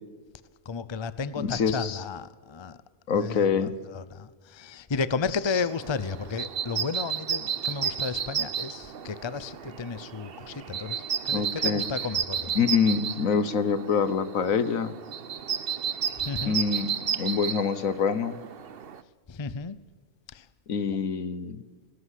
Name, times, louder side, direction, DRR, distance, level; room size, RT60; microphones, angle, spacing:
voice 1, 0.6-2.8 3.2-12.6 16.2-16.6 19.3-19.8 20.3-20.5 20.8-21.0, left 5 dB, 25° left, 15 dB, 0.6 m, -33 dB
voice 2, 1.4-2.0 3.1-3.7 11.3-11.9 12.5-15.0 16.5-18.4 20.7-21.6, left 6 dB, 75° left, 14 dB, 1.5 m, -26 dB
sound 1, 5.5-19.0, right 8 dB, 50° right, 1.0 m, -33 dB
18.0 x 17.5 x 8.3 m, 1.5 s
omnidirectional pair, 1.4 m